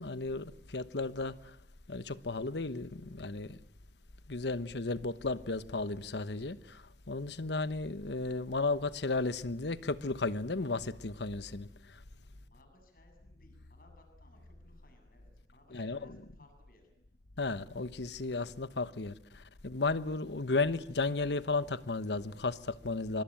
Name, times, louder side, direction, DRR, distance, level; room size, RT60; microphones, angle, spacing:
voice 1, 0.0-1.6 1.9-3.6 4.3-12.0 15.7-16.1 17.4-23.2, left 3 dB, 80° left, 1.1 m, -34 dB
voice 2, 12.2-16.9, left 1 dB, 55° left, 7.8 m, -63 dB
25.5 x 25.5 x 9.0 m
head